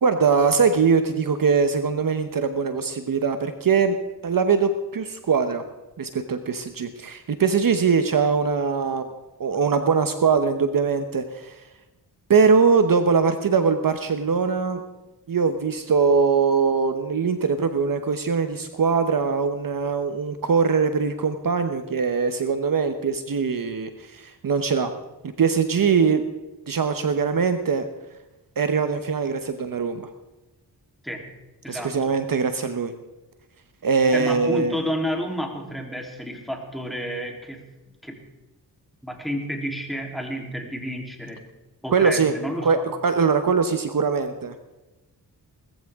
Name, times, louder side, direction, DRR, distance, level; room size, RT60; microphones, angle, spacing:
voice 1, 0.0-4.0 4.2-5.6 6.0-9.1 9.4-11.6 12.3-14.8 15.3-24.9 25.4-26.2 26.7-27.9 28.6-30.1 31.7-32.9 33.8-34.8 41.9-42.3 42.6-42.8 43.0-44.6, right 5 dB, 55° right, 8 dB, 1.0 m, -22 dB
voice 2, 31.6-32.1 34.1-37.6 38.0-38.2 39.0-41.4 41.8-42.8, equal, ahead, 1 dB, 3.4 m, -30 dB
19.5 x 14.5 x 3.6 m, 1.1 s
cardioid pair, 70°, 40 cm